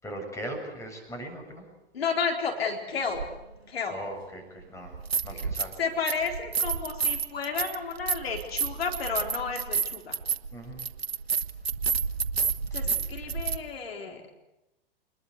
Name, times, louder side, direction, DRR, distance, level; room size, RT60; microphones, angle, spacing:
voice 1, 0.0-1.6 3.9-5.0 5.2-5.7 10.5-10.9 12.8-13.0 13.3-13.4, right 1 dB, 10° left, 3 dB, 7.8 m, -39 dB
voice 2, 1.9-3.3 3.7-4.0 5.3-5.4 5.8-10.2 12.7-14.3, left 5 dB, 80° left, 3 dB, 4.2 m, -32 dB
sound 1, 3.2-3.3 4.8-5.8 6.1-13.6, right 6 dB, 90° right, 1.3 m, -30 dB
26.5 x 21.0 x 8.2 m, 0.95 s
hypercardioid pair, 110°, 30 cm